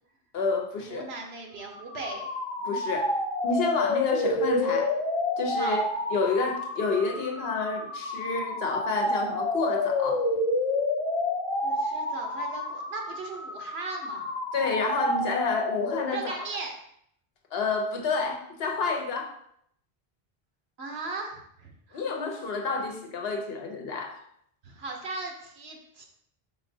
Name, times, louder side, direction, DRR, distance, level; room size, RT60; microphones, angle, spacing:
voice 1, 0.3-1.1 2.6-3.1 3.4-4.9 5.4-5.8 6.1-10.2 14.5-16.3 17.5-19.4 21.9-24.2, left 4 dB, 70° left, 2 dB, 1.0 m, -29 dB
voice 2, 0.9-2.3 5.6-5.8 11.6-14.3 16.1-16.7 20.8-22.1 24.6-26.0, right 3 dB, 80° right, 2 dB, 1.1 m, -37 dB
sound 1, 1.7-16.4, left 2 dB, 35° left, 0.6 m, -29 dB
5.3 x 3.7 x 2.7 m, 0.70 s
omnidirectional pair, 1.1 m